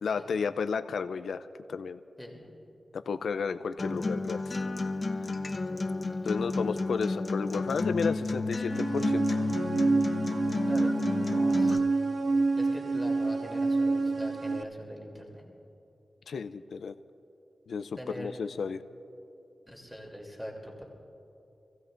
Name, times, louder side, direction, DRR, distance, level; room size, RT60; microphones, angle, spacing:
voice 1, 0.0-2.0 2.9-4.6 6.2-9.5 11.6-11.7 16.3-16.9 17.7-18.8, left 5 dB, 85° left, 10 dB, 0.4 m, -33 dB
voice 2, 2.2-2.5 5.7-6.1 10.7-11.7 12.5-15.4 18.0-18.3 19.7-20.9, equal, ahead, -1 dB, 3.0 m, -42 dB
Acoustic guitar, 3.8-11.8, left 3 dB, 50° left, 1.1 m, -31 dB
sound 1, 8.7-14.6, right 3 dB, 60° right, 0.6 m, -28 dB
27.5 x 16.0 x 2.6 m, 2.8 s
cardioid pair, 50°, 0 cm